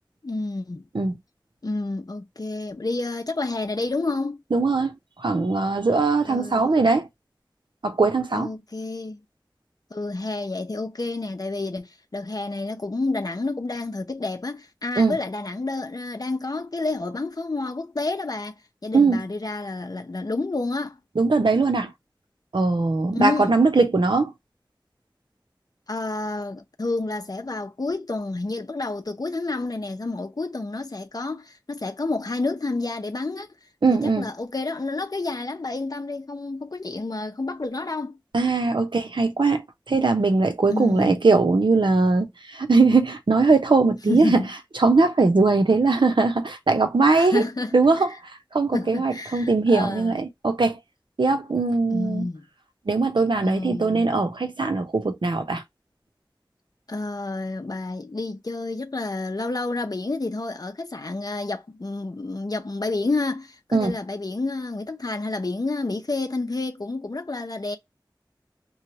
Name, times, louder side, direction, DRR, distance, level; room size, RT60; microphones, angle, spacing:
voice 1, 0.2-0.8 1.6-4.4 6.3-6.7 8.3-9.2 9.9-18.5 18.8-21.0 23.1-23.6 25.9-33.5 33.9-38.2 40.7-41.2 44.1-44.5 47.2-47.8 48.1-48.2 48.7-50.2 51.9-52.5 53.4-54.1 56.9-67.8, left 2 dB, 55° left, 0.6 m, -29 dB
voice 2, 4.5-7.1 7.8-8.5 15.0-15.1 18.9-19.2 21.2-21.9 22.5-24.3 33.8-34.3 38.3-39.6 39.9-44.4 44.8-47.4 47.7-48.1 48.5-50.8 51.2-52.3 52.9-55.6 63.7-63.9, right 3 dB, 85° right, 0.8 m, -20 dB
3.1 x 2.3 x 2.8 m
wide cardioid pair, 45°, 8 cm